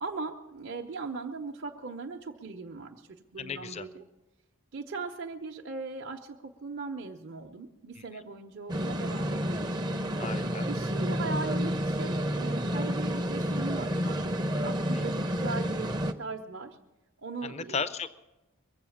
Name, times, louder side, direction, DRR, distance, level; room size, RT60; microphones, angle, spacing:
voice 1, 0.0-4.0 4.7-9.7 10.5-14.2 14.6-16.8 17.2-17.8, right 4 dB, 55° right, 0 dB, 0.7 m, -39 dB
voice 2, 3.4-3.9 8.0-8.1 10.2-10.7 14.7-15.1 17.4-18.1, left 5 dB, 30° left, 14 dB, 0.5 m, -36 dB
sound 1, 8.7-16.1, equal, 20° right, 0.6 m, -30 dB
22.0 x 7.9 x 7.1 m, 1.0 s
head